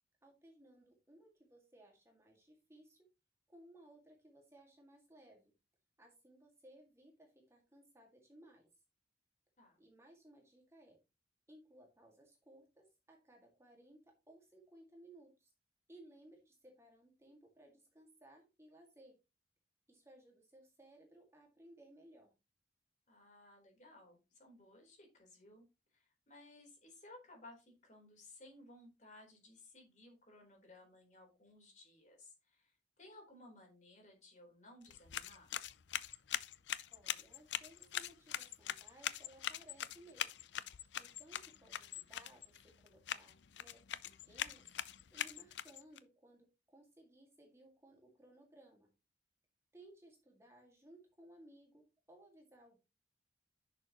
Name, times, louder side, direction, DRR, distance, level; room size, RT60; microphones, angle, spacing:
voice 1, 0.2-3.1 3.5-5.5 6.0-8.7 9.8-11.0 11.5-15.5 15.9-19.2 19.9-22.3 36.9-40.3 40.9-44.7 45.1-48.9 49.7-52.8, right 1 dB, 15° right, 1 dB, 2.0 m, -61 dB
voice 2, 23.1-35.5, left 2 dB, 40° left, 2 dB, 3.9 m, -59 dB
sound 1, 34.8-46.0, left 10 dB, 75° left, 0.5 m, -43 dB
10.5 x 6.7 x 3.0 m, 0.27 s
head